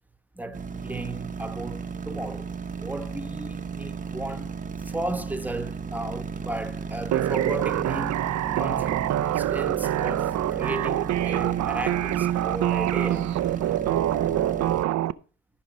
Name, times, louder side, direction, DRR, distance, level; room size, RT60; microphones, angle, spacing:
voice 1, 0.3-2.5 2.8-4.5 4.8-8.2 8.5-13.3, right 1 dB, 5° right, 1.1 m, -35 dB
sound 1, 0.5-14.8, right 5 dB, 25° right, 0.9 m, -34 dB
sound 2, 7.1-15.1, right 13 dB, 65° right, 0.5 m, -25 dB
13.5 x 5.0 x 5.2 m
cardioid pair, 90°, 30 cm